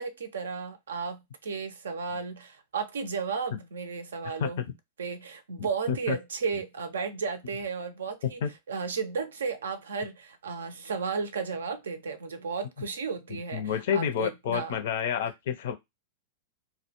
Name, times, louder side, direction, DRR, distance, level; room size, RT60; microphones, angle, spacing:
voice 1, 0.0-4.6 5.0-8.4 8.7-14.8, right 5 dB, 70° right, 0.4 m, -34 dB
voice 2, 5.6-6.2 8.4-8.5 13.3-15.7, left 8 dB, 60° left, 0.5 m, -30 dB
2.2 x 2.0 x 2.9 m
figure-of-eight pair, 95°, 0 cm